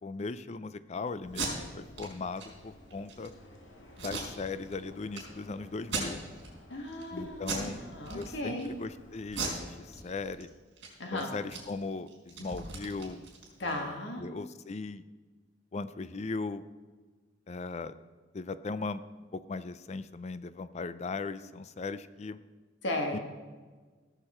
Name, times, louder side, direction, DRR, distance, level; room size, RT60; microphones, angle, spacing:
voice 1, 0.0-1.5 1.7-3.3 4.0-6.2 7.1-7.8 8.1-10.5 11.1-13.3 13.6-15.0 15.7-16.6 17.5-18.0 18.3-19.0 19.3-22.4 23.1-23.2, left 3 dB, 35° left, 14 dB, 0.4 m, -38 dB
sound 1, 1.2-10.4, left 1 dB, 85° left, 1.8 m, -53 dB
Packing tape duct tape, 1.2-1.5 1.9-2.1 2.4-2.5 2.9-3.3 4.0-4.8 5.1-5.2 5.8-6.5 6.9-7.1 7.4-7.7 8.0-8.7 9.3-10.4 10.7-10.9 11.2-13.8, right 4 dB, 70° right, 4.0 m, -38 dB
voice 2, 6.7-8.7 11.0-11.3 13.6-14.3 22.8-23.2, left 1 dB, 70° left, 3 dB, 1.7 m, -35 dB
17.0 x 6.8 x 4.4 m, 1.4 s
head